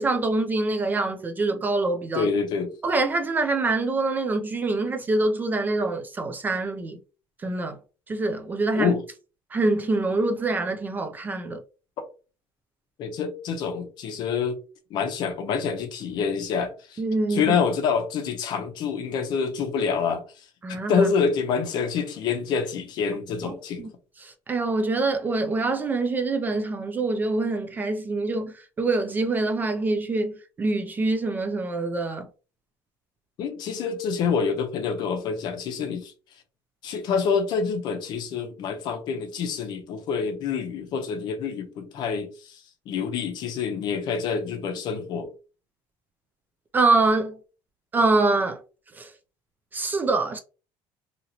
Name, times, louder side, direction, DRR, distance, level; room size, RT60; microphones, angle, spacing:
voice 1, 0.0-2.3 2.8-7.0 7.4-7.8 8.1-8.9 9.5-11.6 17.0-17.6 20.6-21.1 23.4-23.5 23.8-23.9 24.2-32.3 46.7-47.4 47.9-48.6 48.9-49.1 49.7-50.4, right 3 dB, 20° right, 0.3 m, -25 dB
voice 2, 2.1-2.7 8.7-9.0 13.0-14.6 14.9-17.0 17.3-20.2 20.9-23.9 33.4-36.1 36.8-42.6 42.9-45.3, left 6 dB, 50° left, 0.6 m, -27 dB
2.8 x 2.8 x 2.7 m
cardioid pair, 165°, 10 cm